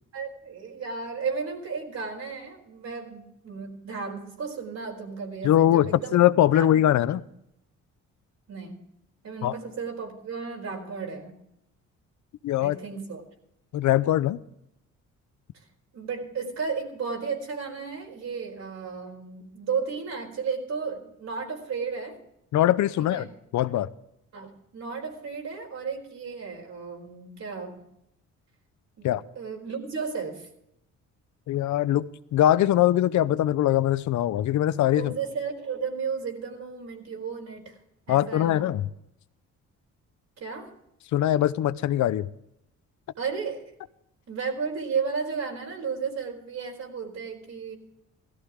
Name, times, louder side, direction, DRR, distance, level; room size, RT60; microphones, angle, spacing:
voice 1, 0.1-6.2 6.5-6.8 8.5-8.8 9.2-11.4 12.6-13.2 15.9-22.2 23.1-23.2 24.3-27.8 29.0-29.1 29.3-30.5 34.9-37.8 38.1-38.6 40.4-40.7 43.2-43.7 44.3-47.7, right 5 dB, 60° right, 1 dB, 4.5 m, -33 dB
voice 2, 5.4-7.2 9.4-9.6 12.4-12.8 13.7-14.4 22.5-23.3 23.5-23.9 29.0-29.2 31.5-32.1 32.3-35.1 38.1-38.9 41.1-42.3, left 12 dB, 70° left, 16 dB, 0.7 m, -22 dB
17.5 x 13.5 x 3.7 m, 0.80 s
cardioid pair, 90°, 30 cm